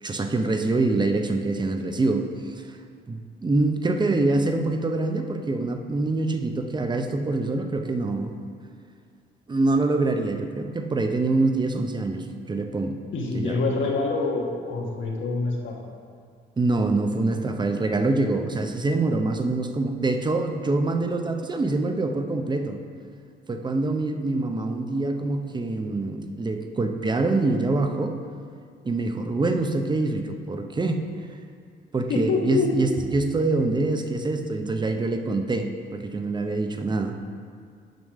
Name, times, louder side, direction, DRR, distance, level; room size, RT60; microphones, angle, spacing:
voice 1, 0.0-2.8 3.1-8.3 9.5-13.0 13.3-13.6 16.6-22.8 23.5-28.2 28.8-31.1 31.9-37.2, right 2 dB, 20° right, 6 dB, 0.6 m, -25 dB
voice 2, 13.1-15.7 32.1-32.9, left 3 dB, 75° left, 0 dB, 1.3 m, -26 dB
9.1 x 3.2 x 6.3 m, 2.1 s
cardioid pair, 90°, 20 cm